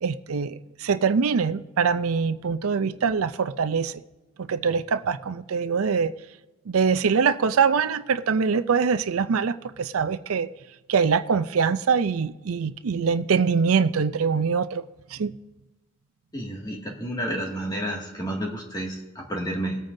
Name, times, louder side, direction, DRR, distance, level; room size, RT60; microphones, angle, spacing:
voice 1, 0.0-4.0 4.4-6.1 6.7-10.5 10.9-14.9 15.1-15.3, right 5 dB, 80° right, 0.5 m, -23 dB
voice 2, 16.3-19.8, right 1 dB, 20° left, 2.1 m, -30 dB
22.5 x 8.9 x 2.7 m
head